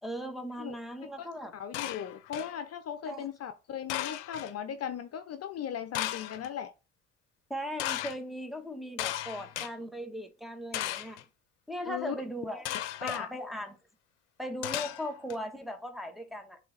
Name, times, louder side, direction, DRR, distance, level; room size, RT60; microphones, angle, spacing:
voice 1, 0.0-1.5 3.0-3.2 7.5-11.2 11.7-12.7 13.0-13.8 14.4-16.6, equal, ahead, 1.6 m, -38 dB
voice 2, 1.5-6.7 11.9-12.2 13.0-13.3, left 8 dB, 45° left, 0.8 m, -37 dB
sound 1, 1.7-2.6 3.9-4.5 5.9-6.5 7.8-8.2 9.0-9.7 10.7-11.2 12.7-13.2 14.6-15.4, left 13 dB, 85° left, 0.6 m, -35 dB
6.6 x 3.4 x 4.2 m
hypercardioid pair, 70°, 35 cm